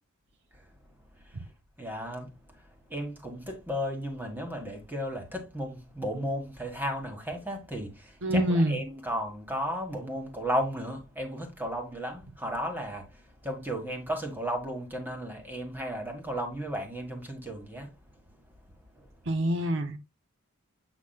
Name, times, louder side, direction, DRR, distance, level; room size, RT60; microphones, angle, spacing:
voice 1, 1.8-2.6 2.9-17.9 19.0-19.1, equal, 10° right, 1.7 m, -34 dB
voice 2, 8.2-8.8 19.3-20.0, equal, 55° right, 0.7 m, -25 dB
8.4 x 6.0 x 2.3 m
head